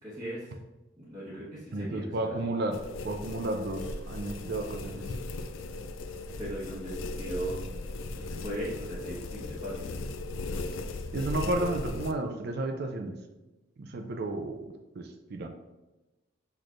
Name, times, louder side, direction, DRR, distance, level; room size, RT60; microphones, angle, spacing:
voice 1, 0.0-0.5 1.0-2.4 6.4-7.6 8.1-9.9, right 1 dB, 20° right, -11 dB, 1.2 m, -38 dB
voice 2, 1.7-2.8 3.0-5.1 11.1-13.2 13.8-15.5, right 2 dB, 55° right, 4 dB, 0.4 m, -32 dB
sound 1, 2.7-12.1, left 2 dB, 85° left, 0.4 m, -37 dB
5.9 x 3.2 x 2.5 m, 1.1 s
head